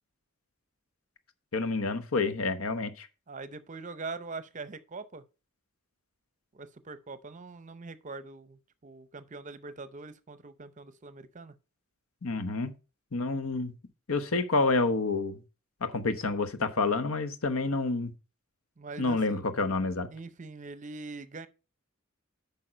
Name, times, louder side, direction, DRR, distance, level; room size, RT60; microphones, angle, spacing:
voice 1, 1.5-3.1 12.2-12.7 13.1-13.7 14.1-15.4 15.8-18.1 19.0-20.1, left 3 dB, 85° left, 1.1 m, -28 dB
voice 2, 3.3-5.2 6.5-11.6 18.8-19.4 20.1-21.5, right 3 dB, 35° right, 0.7 m, -43 dB
8.8 x 5.5 x 5.1 m
head